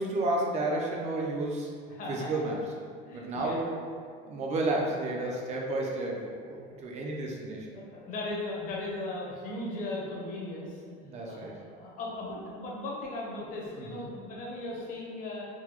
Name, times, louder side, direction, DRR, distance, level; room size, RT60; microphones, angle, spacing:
voice 1, 0.0-1.7 2.1-2.6 3.1-3.7 4.2-7.8 11.0-11.5 13.8-14.1, right 2 dB, 35° right, -1 dB, 0.5 m, -31 dB
voice 2, 1.9-2.5 3.0-3.6 6.5-6.7 7.7-10.8 11.3-11.5 11.7-15.5, left 2 dB, 40° left, -4 dB, 0.8 m, -37 dB
3.9 x 2.2 x 3.0 m, 2.1 s
cardioid pair, 145°, 21 cm